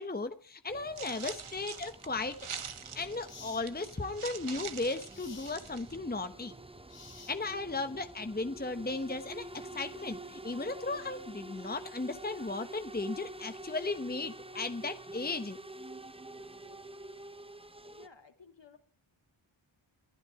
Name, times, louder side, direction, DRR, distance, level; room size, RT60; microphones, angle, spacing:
voice 1, 0.0-2.5 2.9-6.5 7.3-15.6, left 3 dB, 20° left, 1.0 m, -36 dB
sound 1, 0.7-18.1, right 2 dB, 10° right, 0.9 m, -48 dB
sound 2, 1.0-6.0, right 7 dB, 85° right, 1.4 m, -45 dB
sound 3, 2.4-2.5 3.3-3.7 5.1-5.6 6.9-7.7, left 5 dB, 85° left, 3.0 m, -51 dB
voice 2, 7.4-7.7 16.3-16.8 17.8-18.8, left 5 dB, 60° left, 3.3 m, -58 dB
22.0 x 12.0 x 4.7 m
cardioid pair, 50°, 49 cm